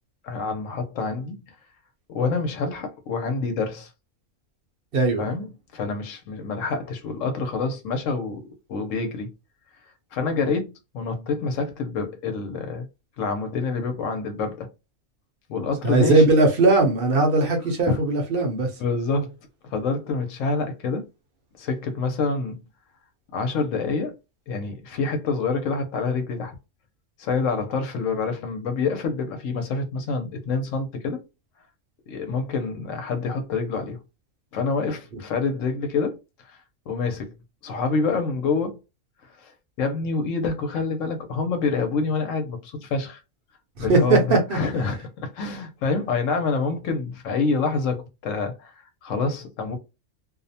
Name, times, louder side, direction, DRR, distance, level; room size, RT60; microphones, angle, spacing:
voice 1, 0.2-1.3 2.1-3.9 5.2-8.4 8.7-9.3 10.1-12.8 13.2-14.7 15.5-16.2 17.9-18.0 18.8-19.4 19.6-21.1 21.6-22.6 23.3-24.2 24.5-26.6 27.2-31.2 32.1-34.0 34.5-36.2 36.4-36.6 36.9-37.3 37.6-38.8 39.4-39.5 39.8-43.2 43.8-48.7 49.0-49.8, left 4 dB, 75° left, 0.9 m, -27 dB
voice 2, 4.9-5.2 15.8-18.7 43.8-44.6, right 3 dB, 55° right, 0.8 m, -19 dB
2.5 x 2.0 x 2.6 m
omnidirectional pair, 1.4 m